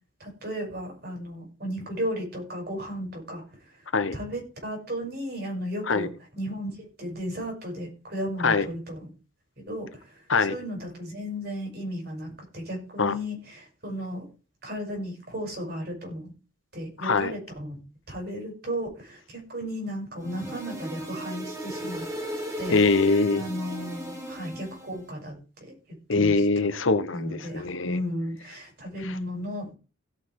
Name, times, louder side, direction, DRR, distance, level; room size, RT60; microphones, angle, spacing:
voice 1, 0.2-3.8 4.1-6.1 6.3-9.1 9.6-14.2 14.6-16.3 16.7-17.8 18.1-22.1 22.6-22.8 23.3-25.3 25.7-25.8 26.1-26.4 27.1-29.7, equal, 50° right, 0 dB, 6.6 m, -34 dB
voice 2, 17.0-17.3 22.7-23.4 26.1-28.0 29.0-29.1, left 4 dB, 85° left, 12 dB, 1.1 m, -23 dB
sound 1, 20.2-25.0, right 1 dB, 15° right, 2.3 m, -36 dB
17.0 x 6.2 x 4.8 m, 0.35 s
head